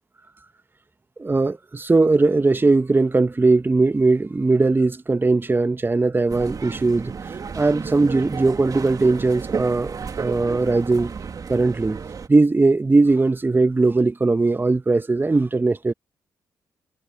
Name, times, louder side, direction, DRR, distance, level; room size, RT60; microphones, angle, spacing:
voice 1, 1.2-7.1 7.5-11.1 11.5-12.0 12.3-15.9, right 3 dB, 25° right, 1.3 m, -19 dB
sound 1, 6.3-12.3, right 6 dB, 45° right, 2.4 m, -32 dB
hypercardioid pair, 40°, 8 cm